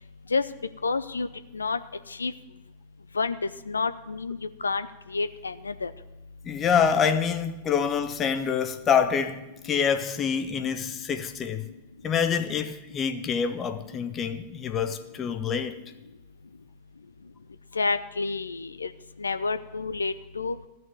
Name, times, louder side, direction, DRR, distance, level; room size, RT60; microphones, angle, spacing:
voice 1, 0.8-1.3 1.5-1.8 2.2-2.3 3.1-4.4 4.6-5.9 17.8-18.9 19.2-20.6, left 4 dB, 75° left, 0.6 m, -29 dB
voice 2, 6.4-11.6 12.0-15.7, left 7 dB, 25° left, 1.0 m, -26 dB
14.5 x 6.3 x 9.1 m
figure-of-eight pair, 90°, 0 cm